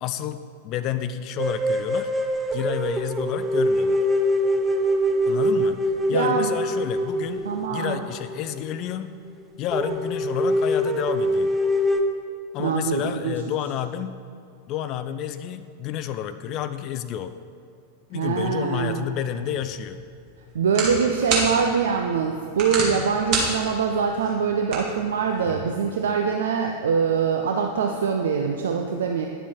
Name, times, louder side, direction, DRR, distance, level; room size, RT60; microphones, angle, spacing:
voice 1, 0.0-2.1 2.5-4.0 5.3-5.8 6.1-9.1 9.6-11.5 12.5-14.2 14.7-17.3 18.1-20.0, left 10 dB, 40° left, 11 dB, 0.4 m, -30 dB
sound 1, 1.4-8.7 9.0-9.1 9.4-9.5 9.7-12.0, equal, 10° right, 0.6 m, -24 dB
voice 2, 5.1-5.4 6.1-6.5 7.4-8.0 12.6-13.4 18.1-19.0 20.5-29.3, right 6 dB, 65° right, 3 dB, 0.5 m, -24 dB
sound 2, 19.5-25.6, right 3 dB, 45° right, 2.0 m, -31 dB
9.9 x 7.1 x 4.4 m, 2.5 s
figure-of-eight pair, 90°, 0 cm